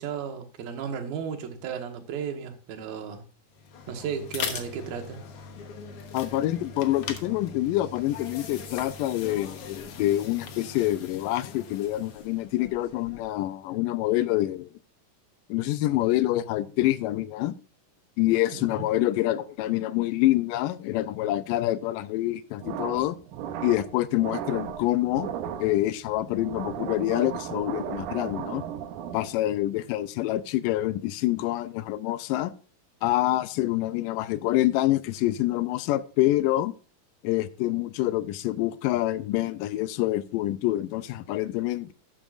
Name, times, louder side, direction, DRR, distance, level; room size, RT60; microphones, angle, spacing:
voice 1, 0.0-3.2 3.9-5.2 18.5-18.9, right 7 dB, 90° right, 3.1 m, -34 dB
sound 1, 3.5-13.4, left 6 dB, 60° left, 1.7 m, -40 dB
voice 2, 6.1-14.7 15.5-17.6 18.2-23.2 23.6-25.3 25.6-28.6 29.1-32.5 33.0-36.7 37.2-41.9, left 15 dB, 80° left, 2.1 m, -26 dB
sound 2, 22.6-29.5, right 9 dB, 70° right, 2.1 m, -36 dB
12.5 x 8.8 x 2.5 m
omnidirectional pair, 4.0 m